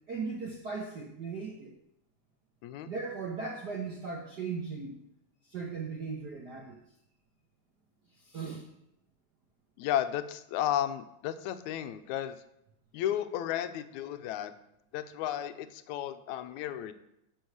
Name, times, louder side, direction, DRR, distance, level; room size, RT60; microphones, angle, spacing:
voice 1, 0.1-1.7 2.9-5.0 5.5-6.8 8.2-8.6, right 4 dB, 70° right, 1 dB, 0.9 m, -37 dB
voice 2, 9.8-12.4 12.9-14.5 14.9-16.9, left 11 dB, 90° left, 11 dB, 2.0 m, -33 dB
10.0 x 5.5 x 7.8 m, 0.80 s
omnidirectional pair, 3.3 m